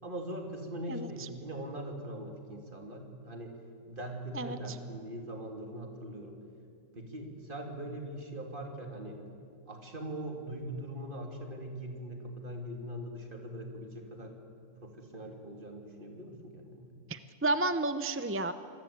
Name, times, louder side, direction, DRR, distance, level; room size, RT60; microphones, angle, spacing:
voice 1, 0.0-3.6 3.9-6.3 6.9-9.2 9.7-14.3 14.8-16.9, right 1 dB, 35° right, 2 dB, 3.5 m, -41 dB
voice 2, 0.9-1.3 4.3-4.8 17.1-18.5, right 2 dB, 15° right, 11 dB, 0.5 m, -32 dB
28.0 x 20.5 x 8.8 m, 2.3 s
omnidirectional pair, 1.5 m